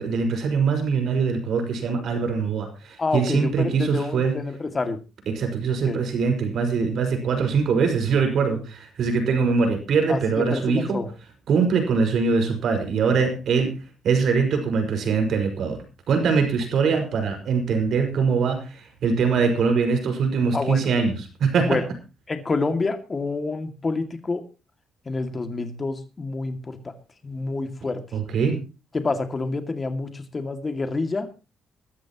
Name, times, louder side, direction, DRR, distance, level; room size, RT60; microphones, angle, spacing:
voice 1, 0.0-4.3 5.3-11.0 11.5-13.7 14.0-21.8 28.1-28.6, right 5 dB, 65° right, 5 dB, 5.6 m, -23 dB
voice 2, 3.0-5.0 5.9-6.0 10.1-11.1 20.5-20.8 21.6-21.8 22.3-24.4 25.1-26.9 27.2-28.0 28.9-31.3, left 3 dB, 30° left, 6 dB, 2.3 m, -27 dB
22.0 x 13.0 x 3.0 m, 0.32 s
cardioid pair, 90°, 0 cm